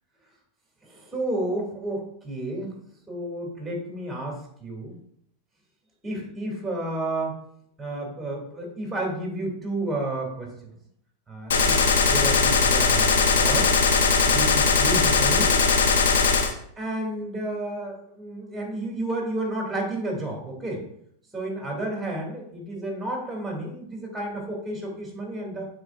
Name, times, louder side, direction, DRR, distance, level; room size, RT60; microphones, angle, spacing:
voice 1, 0.8-2.8 3.1-5.0 6.0-7.4 7.8-10.5 11.3-13.7 14.2-15.6 16.8-20.8 21.3-25.7, right 1 dB, 10° right, 0 dB, 2.4 m, -31 dB
Gunshot gunfire, 11.5-16.5, left 4 dB, 85° left, 0.8 m, -20 dB
9.1 x 4.3 x 2.4 m, 0.69 s
hypercardioid pair, 105°, 0 cm